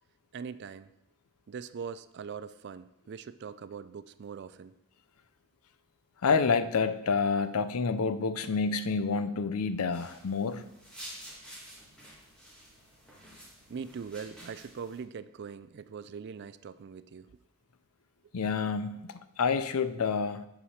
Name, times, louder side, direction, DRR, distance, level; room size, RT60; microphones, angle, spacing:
voice 1, 0.3-0.9 1.5-4.7 13.7-17.3, right 6 dB, 50° right, 14 dB, 0.3 m, -41 dB
voice 2, 6.2-10.6 18.3-20.5, left 5 dB, 75° left, 12 dB, 0.6 m, -28 dB
sound 1, 9.9-15.0, equal, 5° left, 1.8 m, -50 dB
8.5 x 5.0 x 5.6 m, 0.86 s
head